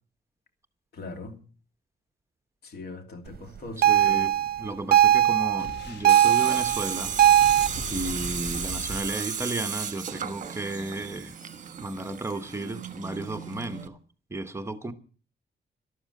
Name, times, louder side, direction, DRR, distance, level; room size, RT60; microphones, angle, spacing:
voice 1, 0.9-1.4 2.6-4.3 7.6-7.7, left 3 dB, 70° left, 2.8 m, -41 dB
voice 2, 3.8-7.2 7.9-11.3 11.8-14.0 14.3-14.9, right 2 dB, 15° right, 1.1 m, -34 dB
sound 1, 3.8-7.7, right 11 dB, 65° right, 0.7 m, -20 dB
Boom, 5.6-10.0, left 2 dB, 90° left, 2.9 m, -40 dB
Tools, 6.1-13.9, right 7 dB, 50° right, 1.2 m, -35 dB
13.0 x 13.0 x 6.4 m
wide cardioid pair, 160°, 17 cm